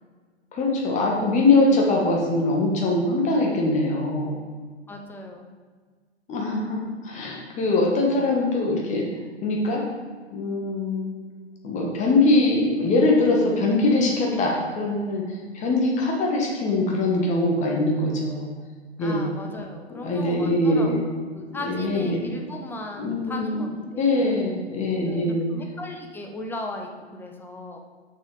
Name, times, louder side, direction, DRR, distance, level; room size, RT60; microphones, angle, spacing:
voice 1, 0.5-4.4 6.3-9.0 9.4-9.8 10.3-11.0 11.6-18.5 19.0-19.3 20.0-21.0 21.5-22.2 23.0-23.6 24.0-25.5, left 2 dB, 20° left, -1 dB, 1.6 m, -22 dB
voice 2, 4.9-5.5 14.3-14.7 19.0-24.3 25.1-27.8, left 1 dB, 5° left, 2 dB, 0.6 m, -37 dB
6.5 x 6.4 x 5.0 m, 1.5 s
figure-of-eight pair, 105°, 33 cm